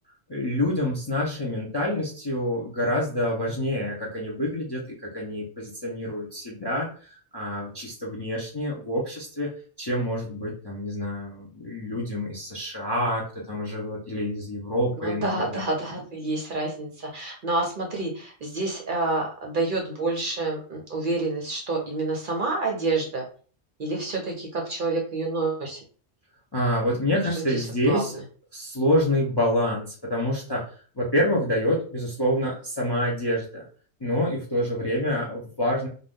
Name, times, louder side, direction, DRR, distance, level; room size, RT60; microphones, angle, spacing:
voice 1, 0.3-9.5 9.8-15.7 26.5-28.2 28.5-30.6 31.0-33.6 34.0-35.9, left 1 dB, 30° left, -3 dB, 0.5 m, -27 dB
voice 2, 15.0-23.3 23.8-25.8 27.5-28.2, right 2 dB, 55° right, 1 dB, 0.6 m, -28 dB
2.6 x 2.3 x 3.5 m, 0.41 s
omnidirectional pair, 1.2 m